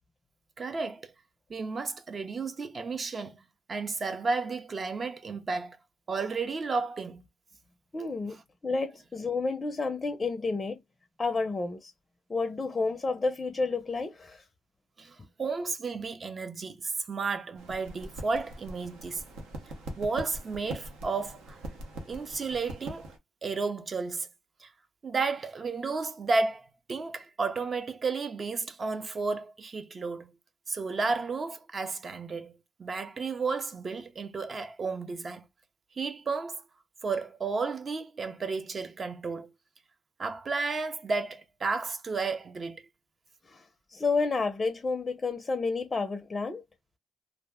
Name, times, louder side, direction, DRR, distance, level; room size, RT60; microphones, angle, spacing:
voice 1, 0.6-1.1 1.5-5.8 6.1-7.2 15.0-19.2 20.0-21.6 22.1-23.1 23.4-24.3 24.6-24.7 25.0-30.3 30.7-35.5 36.0-36.6 37.0-39.5 40.2-42.9, right 4 dB, 40° right, 0.5 m, -32 dB
voice 2, 7.9-10.8 11.2-11.9 12.3-14.4 43.5-43.6 43.9-46.6, left 3 dB, 25° left, 0.5 m, -30 dB
sound 1, 17.5-23.2, right 1 dB, 90° right, 0.8 m, -42 dB
2.4 x 2.0 x 3.3 m
cardioid pair, 90°, 0 cm